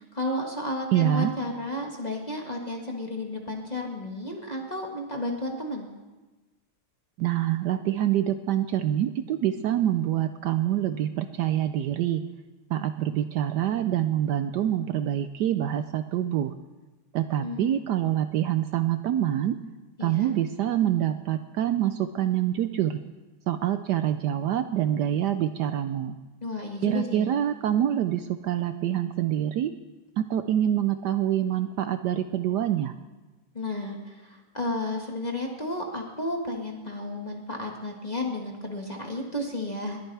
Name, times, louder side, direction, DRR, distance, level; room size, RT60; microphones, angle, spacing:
voice 1, 0.0-5.9 17.4-17.8 20.0-20.3 26.4-27.3 33.5-40.0, left 1 dB, 20° left, 0 dB, 1.4 m, -32 dB
voice 2, 0.9-1.3 7.2-12.2 12.7-16.5 17.1-19.6 20.0-23.0 23.5-26.2 26.8-29.7 30.2-32.9, right 11 dB, 75° right, 10 dB, 1.0 m, -26 dB
21.0 x 13.5 x 3.4 m, 1.2 s
omnidirectional pair, 2.2 m